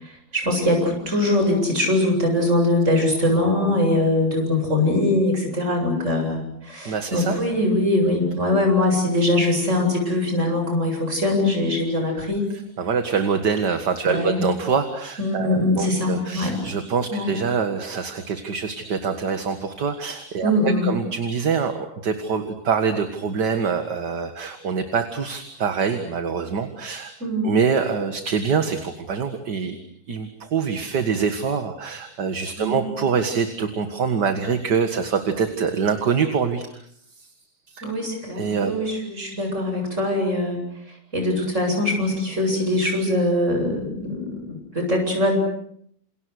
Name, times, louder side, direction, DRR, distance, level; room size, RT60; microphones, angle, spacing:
voice 1, 0.0-12.4 14.0-14.4 15.2-16.6 17.1-17.3 20.4-21.0 27.2-27.5 32.6-32.9 37.8-40.6 41.1-45.4, left 1 dB, 40° right, 3 dB, 8.4 m, -22 dB
voice 2, 6.9-7.3 12.8-20.5 20.8-27.1 27.4-29.8 30.1-36.7 37.2-37.3 37.7-37.8 38.4-38.7, right 6 dB, 65° right, 7 dB, 2.4 m, -25 dB
29.0 x 28.5 x 6.6 m, 0.68 s
omnidirectional pair, 2.0 m